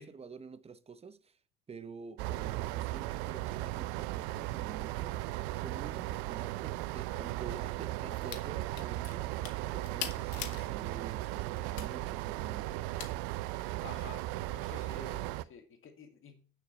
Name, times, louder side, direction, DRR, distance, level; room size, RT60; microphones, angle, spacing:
voice 1, 0.0-1.4 1.7-5.2 5.6-9.3 9.7-13.2, right 5 dB, 15° right, 0.9 m, -48 dB
sound 1, 2.2-15.4, right 17 dB, 65° right, 0.7 m, -37 dB
sound 2, 8.1-8.5 8.7-10.7 11.2-11.9 13.0-13.1, left 11 dB, 65° left, 1.2 m, -42 dB
voice 2, 13.8-16.5, left 5 dB, 35° left, 2.1 m, -51 dB
8.7 x 6.6 x 5.6 m
hypercardioid pair, 70°, 35 cm